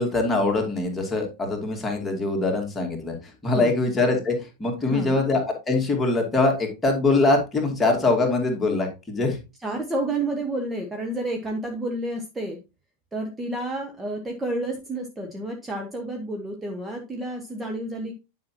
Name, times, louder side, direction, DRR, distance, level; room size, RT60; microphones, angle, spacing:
voice 1, 0.0-3.2 3.4-5.4 5.7-9.4, left 3 dB, 15° left, 1 dB, 2.6 m, -23 dB
voice 2, 4.8-5.2 9.6-12.6 13.1-18.1, right 1 dB, 10° right, 2 dB, 1.3 m, -30 dB
10.5 x 5.9 x 2.9 m, 0.27 s
figure-of-eight pair, 90°, 0 cm